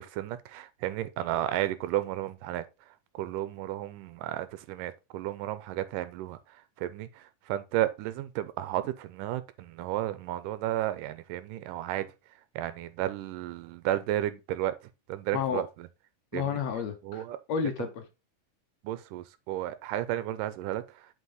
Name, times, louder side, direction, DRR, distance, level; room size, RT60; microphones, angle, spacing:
voice 1, 0.0-2.7 3.1-6.4 6.8-12.1 12.6-14.7 15.1-15.9 16.3-16.6 17.0-17.4 18.8-20.8, right 13 dB, 90° right, 2.2 m, -33 dB
voice 2, 16.3-18.0, left 7 dB, 65° left, 1.9 m, -31 dB
8.2 x 5.3 x 3.9 m
omnidirectional pair, 3.8 m